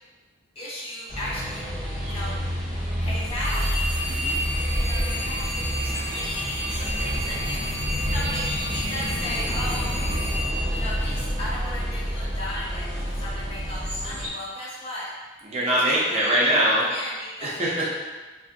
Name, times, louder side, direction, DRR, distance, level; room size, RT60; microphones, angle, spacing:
voice 1, 0.6-1.6 2.1-2.4 3.0-3.7 4.8-6.3 6.7-10.0 10.7-15.1 15.8-16.4 16.9-17.9, left 1 dB, 30° left, -7 dB, 0.6 m, -36 dB
sound 1, 1.1-14.3, equal, ahead, 1.1 m, -28 dB
sound 2, 3.4-11.6, equal, 65° left, 1.3 m, -32 dB
voice 2, 15.4-16.9 17.4-17.7, right 1 dB, 30° right, -5 dB, 0.5 m, -22 dB
2.6 x 2.4 x 2.5 m, 1.3 s
head